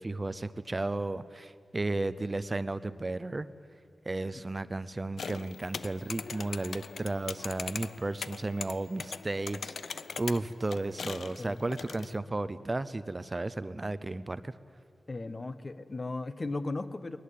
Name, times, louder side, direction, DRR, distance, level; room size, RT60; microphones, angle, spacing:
voice 1, 0.0-3.5 4.1-14.5, right 2 dB, 30° right, 14 dB, 0.6 m, -34 dB
sound 1, 5.2-12.2, left 5 dB, 80° left, 0.6 m, -41 dB
voice 2, 15.1-17.2, left 2 dB, 35° left, 11 dB, 1.1 m, -36 dB
20.5 x 20.0 x 8.4 m, 2.2 s
wide cardioid pair, 95°, 0 cm